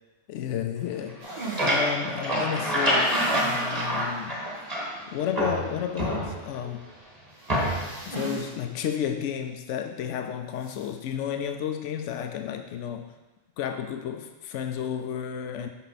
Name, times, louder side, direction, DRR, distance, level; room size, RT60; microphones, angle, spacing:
voice 1, 0.3-4.4 5.1-6.9 8.1-13.1 13.6-15.7, left 9 dB, 80° left, 6 dB, 0.9 m, -32 dB
sound 1, 1.1-5.0 5.4-6.7 7.5-8.0, equal, 30° right, 1.6 m, -27 dB
sound 2, 1.2-1.7 2.9-3.7 4.1-4.2 4.6-4.7 7.3-8.5 8.8-8.9 10.6-10.9, right 3 dB, 85° right, 2.4 m, -38 dB
8.2 x 5.6 x 4.1 m, 1.1 s
omnidirectional pair, 1.2 m